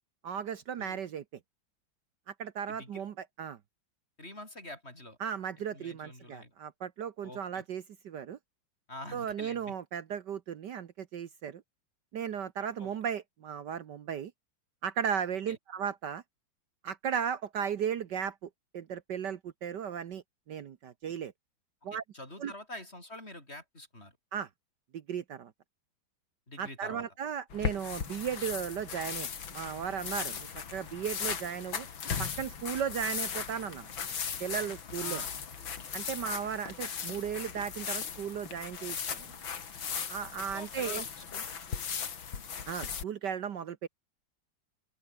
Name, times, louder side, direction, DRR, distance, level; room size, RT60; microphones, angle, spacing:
voice 1, 0.2-1.2 2.3-3.6 5.2-8.4 9.1-11.6 12.1-14.3 14.8-16.2 16.8-21.3 21.8-22.0 22.4-22.5 24.3-24.5 24.9-25.5 26.6-31.9 32.2-33.9 34.4-35.2 35.9-39.3 40.1-41.0 42.7-43.9, right 8 dB, 65° right, 1.6 m, -36 dB
voice 2, 2.7-3.0 4.2-5.2 5.7-6.5 7.2-7.6 8.9-9.7 12.8-12.9 15.5-15.6 21.9-24.1 26.5-27.0 35.0-35.3 40.5-41.0 41.3-41.4 41.8-41.9, left 1 dB, 30° left, 7.3 m, -46 dB
sound 1, 27.5-43.0, left 7 dB, 75° left, 2.9 m, -37 dB
open air
omnidirectional pair, 2.1 m